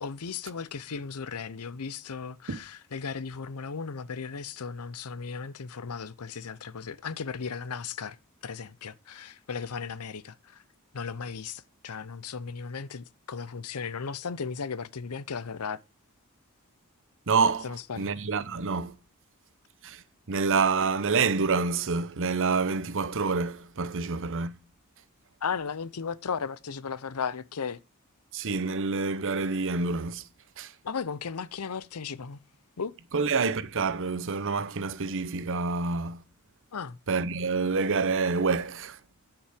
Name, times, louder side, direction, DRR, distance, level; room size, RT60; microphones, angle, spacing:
voice 1, 0.0-8.2 8.4-10.6 10.9-15.8 17.6-18.1 25.4-27.8 30.8-32.4 32.8-32.9 36.7-37.0, left 5 dB, 80° left, 0.7 m, -36 dB
voice 2, 17.3-18.9 19.8-20.0 20.3-24.5 28.3-30.2 30.6-30.7 33.1-36.2 37.1-39.0, right 4 dB, 60° right, 0.9 m, -27 dB
12.0 x 5.9 x 5.0 m
head